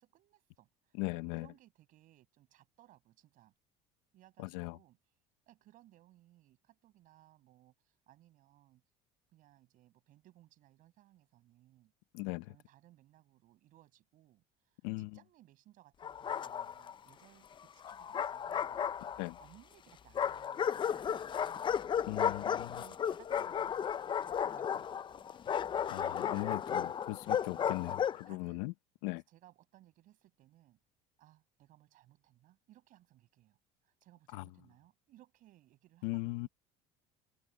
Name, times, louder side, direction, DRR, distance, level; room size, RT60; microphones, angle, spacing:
voice 1, 0.0-3.5 4.1-5.0 5.5-8.8 9.3-11.9 12.5-18.8 19.4-21.7 22.7-25.3 26.1-26.5 27.3-27.9 28.3-28.6 29.1-30.8 31.2-33.6 33.8-36.5, right 15 dB, 60° right, 6.5 m, -63 dB
voice 2, 1.0-1.5 4.4-4.8 12.1-12.5 14.8-15.1 19.2-19.4 22.1-22.8 25.9-28.7 29.0-29.2 34.3-34.5 36.0-36.5, left 22 dB, 80° left, 0.9 m, -38 dB
Bark, 16.0-16.9 17.8-19.4 20.1-28.3, left 8 dB, 30° left, 0.6 m, -34 dB
supercardioid pair, 100°, 16 cm